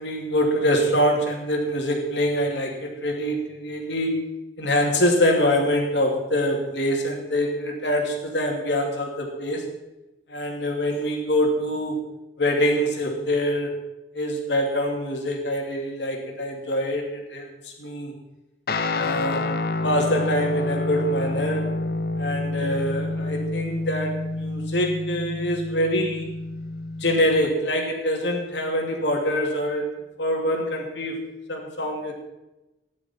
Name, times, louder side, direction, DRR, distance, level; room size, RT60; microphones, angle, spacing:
voice 1, 0.0-4.3 4.6-9.7 10.3-12.1 12.4-13.8 14.1-18.1 18.9-19.6 19.8-21.7 22.2-26.3 27.0-29.9 30.2-31.2 31.5-32.1, equal, 80° left, 1 dB, 2.7 m, -25 dB
Guitar, 18.7-27.5, left 2 dB, 55° left, 0.7 m, -28 dB
15.0 x 10.5 x 4.4 m, 0.98 s
head